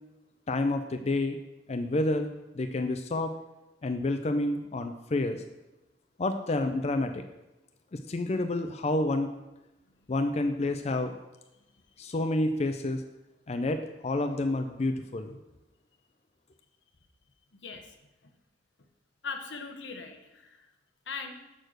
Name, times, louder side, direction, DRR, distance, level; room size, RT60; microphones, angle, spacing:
voice 1, 0.5-1.4 1.7-2.3 2.5-3.3 3.8-5.4 6.2-7.2 7.9-9.3 10.1-11.1 12.0-13.0 13.5-15.3, left 2 dB, 35° left, 7 dB, 0.5 m, -29 dB
voice 2, 17.6-17.9 18.2-18.3 19.2-20.7 21.1-21.4, left 5 dB, 85° left, 6 dB, 1.0 m, -40 dB
6.5 x 6.3 x 6.5 m, 0.98 s
head